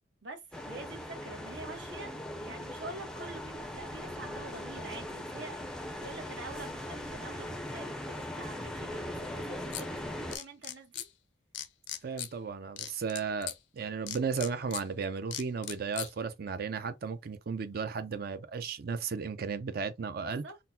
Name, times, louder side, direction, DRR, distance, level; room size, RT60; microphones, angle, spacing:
voice 1, 0.2-5.6 6.0-11.1 20.2-20.5, right 3 dB, 75° right, 1.0 m, -46 dB
sound 1, 0.5-10.4, left 1 dB, 5° left, 0.4 m, -40 dB
sound 2, 9.7-9.9 10.3-11.1 11.5-12.3 12.8-13.6 14.1-14.8 15.3-16.1, left 11 dB, 70° left, 0.5 m, -38 dB
voice 2, 12.0-20.4, right 5 dB, 55° right, 0.4 m, -35 dB
3.9 x 2.1 x 2.6 m
head